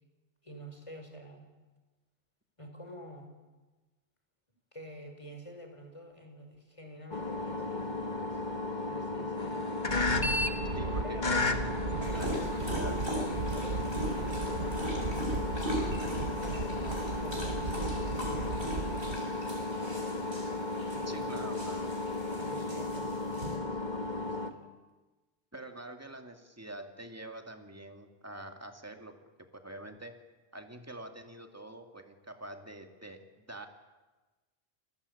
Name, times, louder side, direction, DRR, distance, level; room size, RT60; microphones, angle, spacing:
voice 1, 0.4-1.5 2.6-3.4 4.7-8.4 8.8-9.7 11.0-11.3 12.0-16.6 17.2-17.9 18.2-19.9 20.9-21.4 22.3-23.8 24.2-24.7, equal, 30° left, 4 dB, 5.1 m, -49 dB
sound 1, 7.1-24.5, left 2 dB, 45° left, 1.8 m, -34 dB
sound 2, 9.9-19.2, right 4 dB, 75° right, 1.4 m, -37 dB
voice 2, 10.7-11.0 11.3-11.7 12.1-13.0 21.1-21.9 25.5-29.1 29.5-30.1 30.5-33.7, right 1 dB, 15° right, 5 dB, 2.4 m, -46 dB
Dog, 12.0-23.6, equal, 60° right, 6.4 m, -40 dB
28.5 x 21.0 x 8.6 m, 1.2 s
omnidirectional pair, 1.1 m